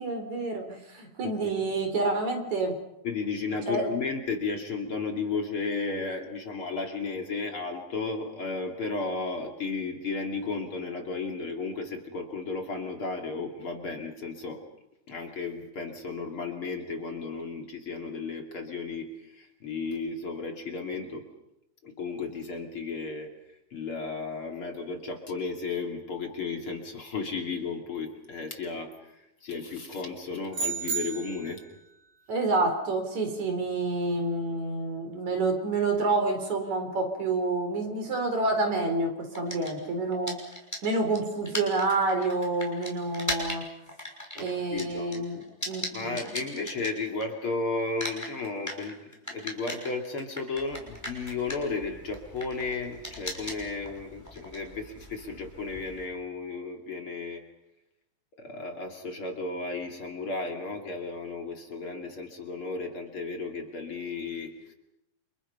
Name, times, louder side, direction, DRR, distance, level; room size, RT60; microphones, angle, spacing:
voice 1, 0.0-2.7 3.7-3.9 32.3-40.4 40.8-43.6 44.4-46.2, right 3 dB, 65° right, 5 dB, 5.2 m, -28 dB
voice 2, 3.0-14.6 15.1-21.3 21.8-23.3 23.7-31.6 44.3-45.3 45.9-49.0 49.3-57.4 58.4-64.7, left 4 dB, 45° left, 2 dB, 3.3 m, -34 dB
sound 1, 30.5-31.6, right 5 dB, 30° right, 4.1 m, -32 dB
sound 2, 39.3-47.5 47.8-56.0, left 1 dB, 5° left, 5.8 m, -39 dB
29.5 x 28.5 x 5.6 m, 0.88 s
omnidirectional pair, 3.6 m